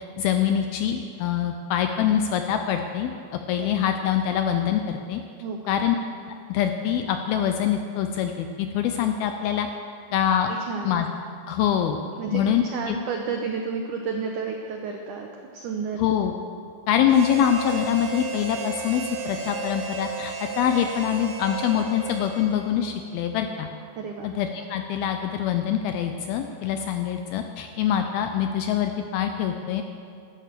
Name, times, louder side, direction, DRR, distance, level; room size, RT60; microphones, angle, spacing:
voice 1, 0.2-3.1 3.5-5.2 5.7-6.0 6.5-9.7 10.1-10.5 10.8-11.1 11.5-12.0 12.3-13.0 16.0-16.3 16.9-23.7 24.2-29.8, left 9 dB, 80° left, 6 dB, 2.2 m, -24 dB
voice 2, 10.5-11.0 12.2-12.4 12.7-16.0 24.0-24.3, right 5 dB, 85° right, 2 dB, 1.7 m, -31 dB
Harmonica, 17.1-22.9, right 4 dB, 70° right, 3.4 m, -34 dB
13.0 x 12.5 x 6.8 m, 2.3 s
omnidirectional pair, 5.0 m